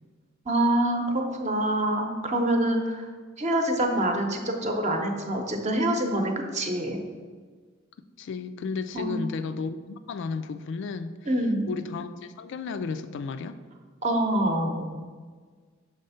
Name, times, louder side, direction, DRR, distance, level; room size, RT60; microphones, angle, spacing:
voice 1, 0.5-3.1 3.4-7.0 8.9-9.2 11.3-11.7 14.0-15.0, right 1 dB, 35° right, 3 dB, 0.8 m, -26 dB
voice 2, 8.2-11.4 11.7-13.6, left 4 dB, 60° left, 11 dB, 0.3 m, -33 dB
6.5 x 3.5 x 5.5 m, 1.5 s
head